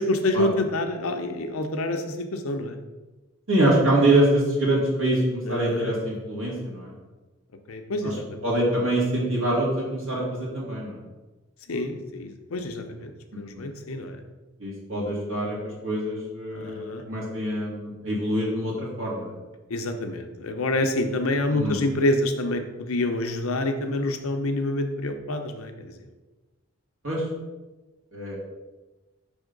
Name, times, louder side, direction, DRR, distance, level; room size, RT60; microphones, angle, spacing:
voice 1, 0.0-2.7 5.5-5.9 7.7-8.4 11.7-14.2 16.5-17.0 19.7-25.9, left 1 dB, 85° left, 6 dB, 0.7 m, -27 dB
voice 2, 3.5-6.9 8.0-8.1 8.4-11.0 13.5-13.6 14.6-15.6 15.8-19.3 21.5-21.8 27.0-27.2 28.1-28.4, right 1 dB, 85° right, -6 dB, 1.9 m, -25 dB
5.5 x 3.5 x 5.2 m, 1.2 s
head